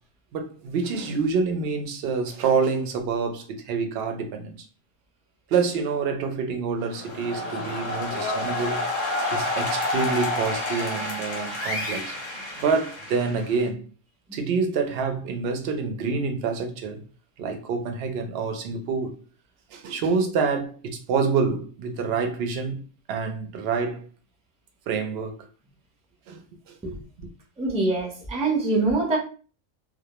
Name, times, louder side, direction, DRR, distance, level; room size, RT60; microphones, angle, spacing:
voice 1, 0.3-4.6 5.5-8.8 9.3-12.1 12.6-13.8 14.3-17.0 17.4-19.2 19.7-22.8 23.1-24.1 24.9-25.4 26.3-26.4 26.7-26.8, right 5 dB, 65° right, 0.7 m, -27 dB
sound 1, 6.8-13.7, left 2 dB, 45° left, 0.6 m, -29 dB
voice 2, 27.6-29.2, right 3 dB, 10° right, 0.5 m, -24 dB
2.2 x 2.1 x 2.9 m
omnidirectional pair, 1.4 m